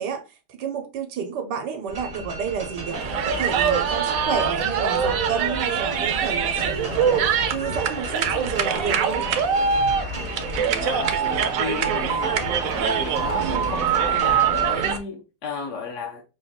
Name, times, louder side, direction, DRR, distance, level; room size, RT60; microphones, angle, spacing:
voice 1, 0.0-9.3 13.4-13.8, right 7 dB, 90° right, 1.3 m, -30 dB
sound 1, 1.9-15.0, right 2 dB, 35° right, 0.6 m, -35 dB
sound 2, 2.8-14.2, left 4 dB, 75° left, 1.3 m, -37 dB
sound 3, 2.9-15.0, right 7 dB, 70° right, 0.9 m, -24 dB
voice 2, 10.8-12.4 12.9-16.2, left 5 dB, 60° left, 0.9 m, -33 dB
5.1 x 2.3 x 3.5 m
omnidirectional pair, 1.8 m